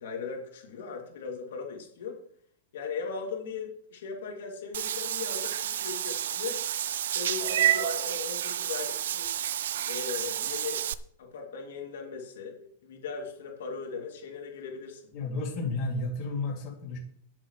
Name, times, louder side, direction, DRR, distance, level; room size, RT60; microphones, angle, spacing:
voice 1, 0.0-2.2 2.7-6.6 7.0-9.3 9.9-10.9 11.2-15.1, left 5 dB, 70° left, 1 dB, 2.8 m, -38 dB
Meow / Water / Bathtub (filling or washing), 4.7-10.9, right 11 dB, 75° right, 0.6 m, -30 dB
voice 2, 15.1-17.0, left 2 dB, 30° left, -2 dB, 2.8 m, -32 dB
21.0 x 7.4 x 3.3 m, 0.65 s
supercardioid pair, 175°, 0 cm